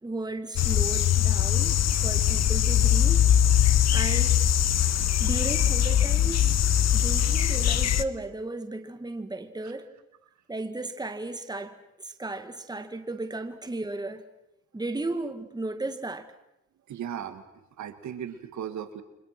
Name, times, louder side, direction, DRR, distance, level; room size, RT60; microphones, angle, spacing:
voice 1, 0.0-3.3 3.9-4.4 5.2-6.6 6.9-9.9 10.5-14.2 14.7-16.3, right 2 dB, 15° right, 8 dB, 2.2 m, -35 dB
sound 1, 0.6-8.0, left 10 dB, 60° left, 1.2 m, -22 dB
voice 2, 16.9-17.4 17.8-19.0, right 9 dB, 70° right, 9 dB, 2.2 m, -37 dB
29.5 x 25.0 x 6.1 m, 0.90 s
cardioid pair, 90°, 30 cm